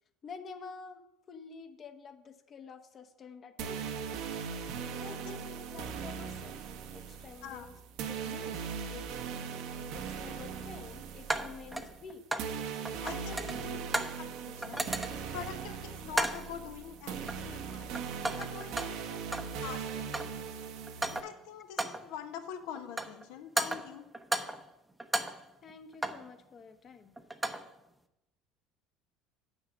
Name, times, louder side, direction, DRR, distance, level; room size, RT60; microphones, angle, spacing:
voice 1, 0.2-1.0 1.3-4.0 5.0-6.7 6.9-7.7 8.1-9.1 9.9-12.2 13.1-13.9 19.0-19.1 21.6-21.7 25.6-27.2, left 5 dB, 40° left, 8 dB, 1.1 m, -49 dB
sound 1, 3.6-21.2, right 6 dB, 65° right, 1.1 m, -40 dB
sound 2, 9.0-9.1 11.3-12.6 12.9-14.3 14.6-15.4 16.1-16.6 17.3-17.7 17.9-19.6 19.9-20.4 20.9-21.4 21.8-22.1 22.8-23.3 23.6-24.7 25.0-26.3 27.2-27.7, right 1 dB, 10° right, 0.8 m, -35 dB
voice 2, 13.0-13.4 14.2-14.8 15.3-17.9 18.4-20.2 21.1-24.1, left 9 dB, 70° left, 7 dB, 1.1 m, -44 dB
8.7 x 6.4 x 6.2 m, 0.89 s
hypercardioid pair, 70°, 0 cm